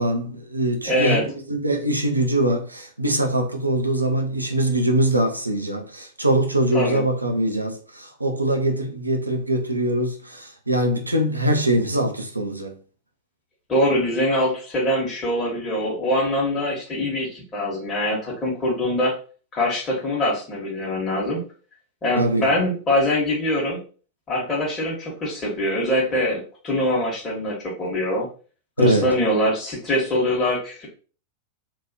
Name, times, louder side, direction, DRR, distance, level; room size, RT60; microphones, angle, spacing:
voice 1, 0.0-12.8 22.2-22.5 28.8-29.1, right 1 dB, 85° right, 0.5 m, -23 dB
voice 2, 0.9-1.2 6.7-7.0 13.7-19.1 19.5-21.4 22.0-23.8 24.3-28.3 28.8-30.9, left 1 dB, 20° left, 0.9 m, -23 dB
3.0 x 2.3 x 2.6 m
figure-of-eight pair, 90°, 0 cm